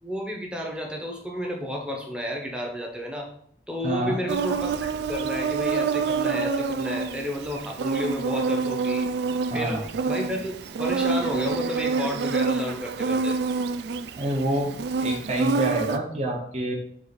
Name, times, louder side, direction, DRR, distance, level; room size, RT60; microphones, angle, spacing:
voice 1, 0.0-3.3 3.7-9.1 9.5-13.4, equal, 5° right, 0 dB, 0.7 m, -31 dB
voice 2, 3.8-4.2 9.5-9.8 14.2-16.8, right 1 dB, 40° right, -1 dB, 0.8 m, -27 dB
Insect, 4.3-16.0, right 4 dB, 70° right, 0.3 m, -27 dB
4.6 x 2.5 x 4.0 m, 0.64 s
head